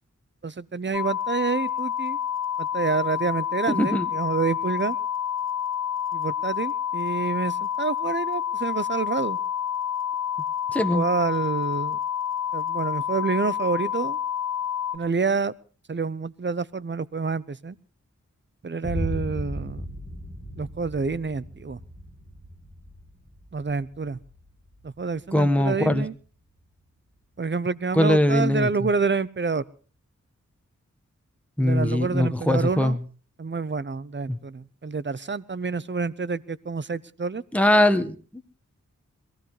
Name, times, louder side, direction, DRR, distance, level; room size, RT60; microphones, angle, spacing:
voice 1, 0.4-2.2 2.6-5.0 6.1-9.4 10.9-12.0 12.5-14.2 14.9-15.5 15.9-17.8 18.6-19.9 20.6-21.8 23.5-24.2 24.8-26.1 27.4-29.6 31.6-33.0 33.4-37.4, right 4 dB, 40° right, 18 dB, 0.8 m, -28 dB
sound 1, 0.9-15.0, left 9 dB, 75° left, 1.2 m, -28 dB
voice 2, 3.7-4.0 10.7-11.0 25.3-26.0 27.9-28.7 31.6-33.0 34.3-34.4 37.5-38.1, left 1 dB, 5° left, 8 dB, 1.5 m, -21 dB
Boom, 18.8-26.7, equal, 15° right, 6.8 m, -37 dB
22.5 x 15.5 x 3.3 m, 0.38 s
cardioid pair, 40°, 30 cm